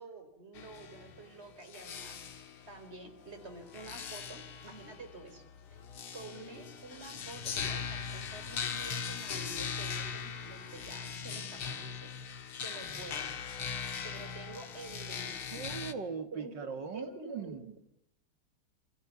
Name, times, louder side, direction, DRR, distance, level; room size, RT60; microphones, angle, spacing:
voice 1, 0.0-2.2 2.7-5.4 5.7-5.8 6.1-12.1 12.5-13.3 14.0-15.8 16.3-17.8, right 2 dB, 30° right, 8 dB, 4.4 m, -48 dB
sound 1, 0.5-15.9, left 6 dB, 85° left, 2.6 m, -40 dB
voice 2, 15.5-17.7, right 6 dB, 55° right, 8 dB, 2.7 m, -40 dB
28.5 x 27.5 x 7.2 m, 0.75 s
omnidirectional pair, 2.3 m